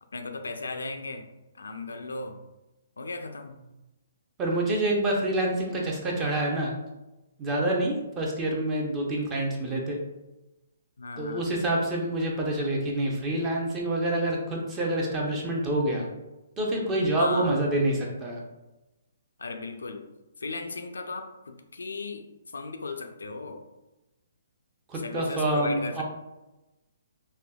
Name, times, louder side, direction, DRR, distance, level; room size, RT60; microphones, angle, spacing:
voice 1, 0.1-1.3 1.5-2.4 3.0-3.6 11.0-11.5 17.2-17.6 19.4-20.1 20.4-22.3 22.5-23.6 24.9-26.0, left 3 dB, 90° left, 6 dB, 0.3 m, -36 dB
voice 2, 4.4-6.7 7.4-10.0 11.2-16.1 16.6-18.4 24.9-26.0, right 1 dB, 20° right, -1 dB, 0.6 m, -27 dB
3.3 x 2.2 x 2.2 m, 1.0 s
hypercardioid pair, 150°, 0 cm